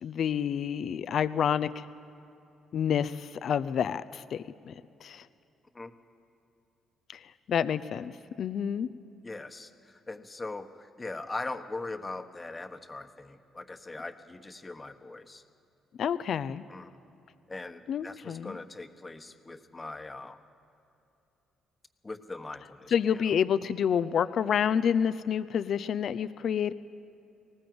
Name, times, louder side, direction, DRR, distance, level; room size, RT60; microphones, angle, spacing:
voice 1, 0.0-1.9 2.7-4.7 5.0-5.3 7.1-7.2 7.5-8.1 8.4-8.9 16.0-16.6 17.9-18.6 22.9-26.7, left 8 dB, 60° left, 15 dB, 0.6 m, -28 dB
voice 2, 9.2-15.4 16.7-16.9 17.5-20.4 22.0-23.2, left 2 dB, 20° left, 7 dB, 1.3 m, -41 dB
19.0 x 19.0 x 7.9 m, 2.9 s
cardioid pair, 80°, 0 cm